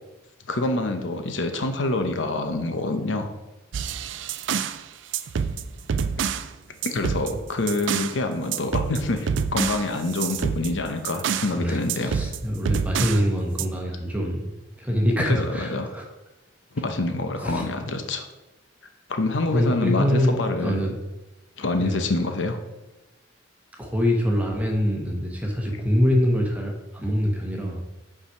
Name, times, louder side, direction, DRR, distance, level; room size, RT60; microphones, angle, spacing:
voice 1, 0.5-3.3 6.8-12.1 15.3-15.9 16.7-18.2 19.1-20.8 21.6-22.6, left 2 dB, 70° left, 6 dB, 0.8 m, -26 dB
sound 1, 3.7-4.8 5.1-6.5 6.8-8.2 8.5-11.6 11.9-13.2 13.6-13.7, right 6 dB, 70° right, 0.4 m, -27 dB
voice 2, 11.5-16.1 17.4-17.6 19.5-21.0 21.8-22.0 23.8-27.8, equal, 10° right, 1 dB, 1.0 m, -24 dB
5.7 x 4.8 x 5.8 m, 1.0 s
head